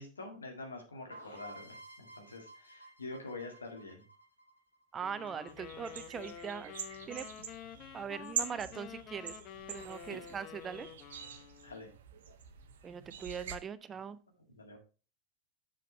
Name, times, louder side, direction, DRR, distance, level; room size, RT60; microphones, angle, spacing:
voice 1, 0.0-4.0 10.1-10.2 11.6-11.9 14.6-14.8, left 2 dB, 75° left, 3 dB, 2.0 m, -46 dB
sound 1, 1.1-4.8, right 2 dB, 90° left, 5.0 m, -53 dB
voice 2, 4.9-6.7 7.1-7.3 7.9-9.4 9.7-10.9 12.8-14.2, right 7 dB, 20° right, 14 dB, 0.6 m, -41 dB
sound 2, 5.0-12.0, left 9 dB, 35° left, 0.9 m, -49 dB
sound 3, 5.5-13.6, right 7 dB, 60° right, 1.0 m, -44 dB
7.5 x 7.2 x 3.2 m, 0.33 s
figure-of-eight pair, 90°, 0 cm